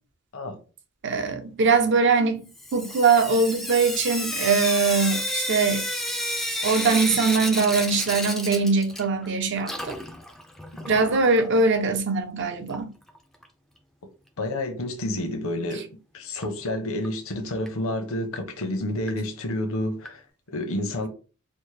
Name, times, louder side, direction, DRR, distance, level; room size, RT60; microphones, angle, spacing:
voice 1, 1.0-5.8 6.6-9.9 10.9-12.9, right 4 dB, 55° right, 0.6 m, -22 dB
Sink (filling or washing) / Drip, 2.5-9.3 9.6-11.5 12.7-12.8 13.1-13.2 13.4-13.5 16.4-16.5 17.0-17.1 17.7-17.8 18.4-18.5 19.1-19.2 20.0-20.1, left 1 dB, ahead, 0.4 m, -31 dB
voice 2, 14.4-21.1, left 1 dB, 65° left, 0.8 m, -29 dB
4.4 x 2.1 x 3.1 m
head